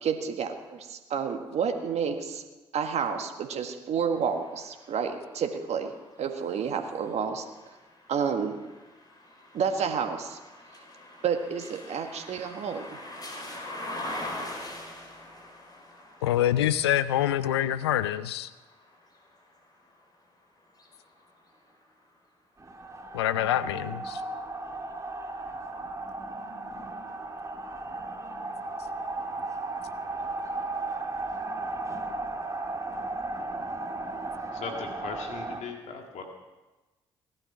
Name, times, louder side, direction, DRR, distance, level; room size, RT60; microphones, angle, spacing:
voice 1, 0.0-2.4 2.7-5.9 6.2-7.4 8.1-8.6 9.5-10.4 11.2-12.9, right 6 dB, 55° right, 5 dB, 1.6 m, -30 dB
sound 1, 4.1-20.1 20.6-21.9, left 1 dB, 30° left, 4.4 m, -44 dB
voice 2, 16.2-18.5 23.1-24.2, left 12 dB, 85° left, 16 dB, 0.4 m, -26 dB
sound 2, 22.6-35.6, right 2 dB, 25° right, 2.1 m, -35 dB
voice 3, 34.6-36.2, left 5 dB, 60° left, 3 dB, 2.0 m, -38 dB
18.0 x 12.0 x 6.0 m, 1.1 s
figure-of-eight pair, 45°, 13 cm